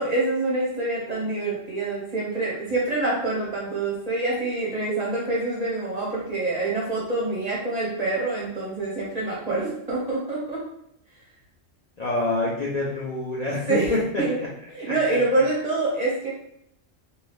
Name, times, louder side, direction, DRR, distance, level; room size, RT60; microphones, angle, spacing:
voice 1, 0.0-10.6 13.5-13.9 14.2-14.4 14.7-16.3, right 2 dB, 40° right, -5 dB, 0.6 m, -26 dB
voice 2, 12.0-14.5 14.8-14.9, left 2 dB, 55° left, -5 dB, 0.4 m, -26 dB
2.7 x 2.3 x 3.3 m, 0.74 s
omnidirectional pair, 1.4 m